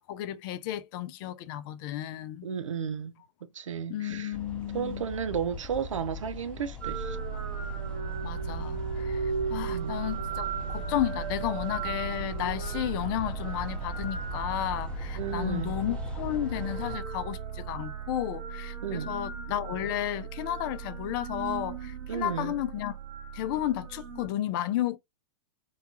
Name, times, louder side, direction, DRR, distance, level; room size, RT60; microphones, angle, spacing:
voice 1, 0.0-2.5 3.9-5.1 8.2-23.0 23.3-25.0, left 12 dB, 45° left, 0.4 m, -33 dB
voice 2, 2.4-3.1 3.5-4.3 4.7-7.2 9.7-9.9 15.2-15.8 18.8-19.1 22.1-22.5, right 7 dB, 90° right, 0.5 m, -33 dB
sound 1, 4.3-17.0, left 3 dB, 5° left, 0.8 m, -41 dB
sound 2, 6.8-24.3, right 7 dB, 65° right, 0.9 m, -36 dB
2.8 x 2.2 x 2.8 m
hypercardioid pair, 115°, 16 cm